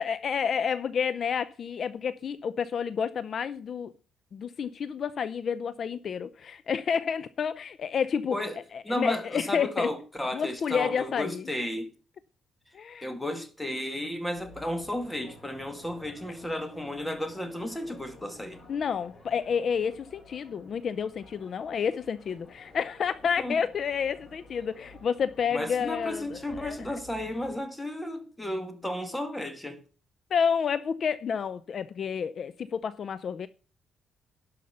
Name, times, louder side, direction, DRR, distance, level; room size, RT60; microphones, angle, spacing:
voice 1, 0.0-3.9 4.3-8.4 8.7-9.9 10.3-11.5 12.7-13.1 18.7-26.8 30.3-33.5, left 7 dB, 55° left, 0.5 m, -30 dB
voice 2, 8.8-11.9 13.0-18.6 23.4-23.6 25.5-29.8, left 1 dB, 10° left, 2.0 m, -33 dB
sound 1, 14.4-27.6, left 1 dB, 35° left, 3.8 m, -52 dB
11.5 x 5.5 x 6.7 m
cardioid pair, 90°, 0 cm